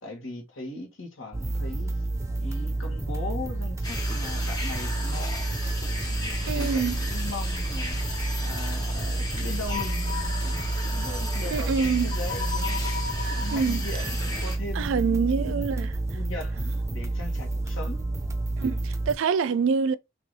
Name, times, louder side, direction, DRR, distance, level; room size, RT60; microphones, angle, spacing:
voice 1, 0.0-2.0 2.4-5.4 5.8-8.0 8.4-12.8 13.3-15.7 16.1-18.1, left 2 dB, 85° left, 1.5 m, -39 dB
sound 1, 1.3-19.2, right 2 dB, 15° right, 0.5 m, -29 dB
sound 2, 3.8-14.6, left 2 dB, 20° left, 1.1 m, -35 dB
voice 2, 6.5-7.0 11.5-12.1 13.5-13.8 14.7-15.9 18.6-20.0, right 5 dB, 80° right, 0.4 m, -25 dB
3.2 x 2.9 x 4.0 m
head